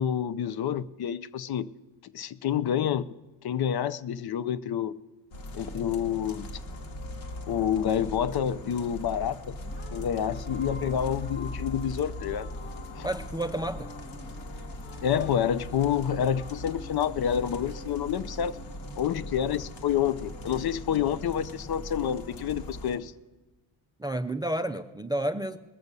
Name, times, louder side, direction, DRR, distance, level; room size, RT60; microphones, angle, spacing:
voice 1, 0.0-1.7 2.1-3.1 3.4-5.0 5.5-6.5 7.5-9.6 9.9-12.5 13.0-13.1 15.0-18.5 19.0-23.1, left 9 dB, 50° left, 16 dB, 0.6 m, -28 dB
sound 1, 5.3-23.0, left 1 dB, 70° left, 2.0 m, -40 dB
sound 2, 9.4-20.4, left 2 dB, 25° left, 0.9 m, -49 dB
voice 2, 13.0-13.9 24.0-25.6, right 1 dB, 10° right, 10 dB, 0.4 m, -30 dB
20.5 x 6.8 x 6.7 m, 1.2 s
cardioid pair, 85°, 49 cm